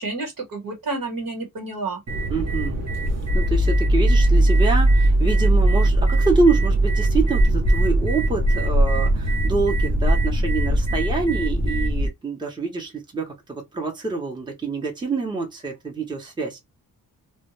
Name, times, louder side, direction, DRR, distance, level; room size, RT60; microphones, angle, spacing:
voice 1, 0.0-2.0, right 3 dB, 70° right, 1.3 m, -30 dB
sound 1, 2.1-12.1, right 1 dB, 50° right, 0.7 m, -19 dB
voice 2, 2.3-2.8 3.3-16.6, right 4 dB, 15° right, 0.7 m, -26 dB
2.2 x 2.2 x 2.9 m
wide cardioid pair, 125°, 34 cm